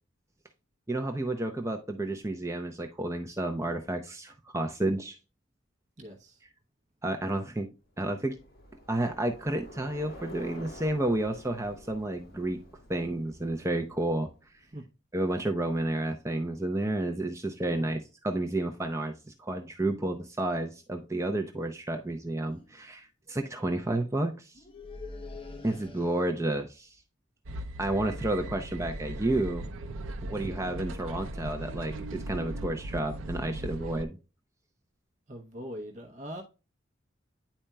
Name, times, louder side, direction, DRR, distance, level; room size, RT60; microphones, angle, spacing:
voice 1, 0.9-5.2 7.0-7.7 8.0-8.4 8.9-12.6 12.9-14.3 15.1-19.1 19.4-24.5 25.6-26.9 27.8-29.7 30.2-34.2, right 1 dB, 15° right, 0.6 m, -31 dB
voice 2, 6.0-6.4 14.7-14.8 17.6-18.0 30.4-30.8 35.3-36.4, equal, 35° right, 0.9 m, -42 dB
Bicycle, 8.0-14.5, left 1 dB, 50° left, 2.1 m, -49 dB
sound 1, 22.0-22.2 22.5-22.8 24.5-26.6, left 3 dB, 25° left, 0.8 m, -45 dB
sound 2, 27.5-34.0, right 1 dB, 85° right, 0.5 m, -38 dB
10.0 x 4.3 x 2.2 m
head